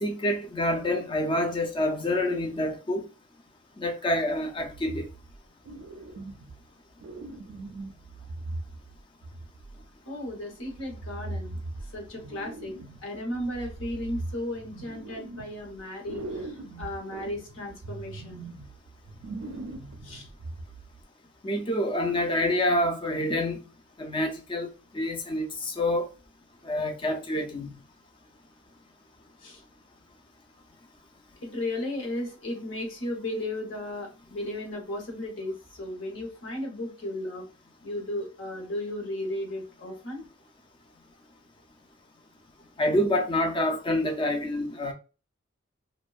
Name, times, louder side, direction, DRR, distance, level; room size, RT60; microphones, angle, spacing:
voice 1, 0.0-3.0 3.8-5.0 21.4-23.6 24.0-24.7 24.9-26.1 26.7-27.7 42.8-44.9, left 1 dB, 25° left, 0.3 m, -27 dB
sound 1, 4.6-5.4 5.7-6.7 7.0-9.9 10.7-13.0 13.3-15.8 16.1-21.0, right 2 dB, 75° right, 0.4 m, -40 dB
voice 2, 10.0-12.7 13.0-18.4 20.0-20.3 29.4-29.6 31.4-37.4 37.8-40.2, left 1 dB, 70° left, 0.8 m, -35 dB
2.6 x 2.1 x 2.3 m
head